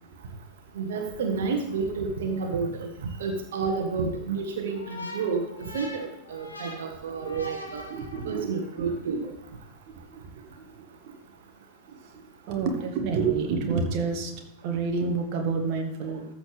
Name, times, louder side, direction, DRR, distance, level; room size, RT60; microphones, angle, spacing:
voice 1, 0.7-2.9 3.2-5.4 5.7-7.8 8.2-9.2, right 5 dB, 60° right, 4 dB, 1.4 m, -30 dB
sound 1, 4.7-8.6, left 1 dB, 75° left, 2.3 m, -42 dB
voice 2, 7.9-9.3 10.1-11.2 11.9-16.3, right 5 dB, 45° right, 3 dB, 1.4 m, -30 dB
13.5 x 6.8 x 3.4 m, 0.78 s
figure-of-eight pair, 90°, 0 cm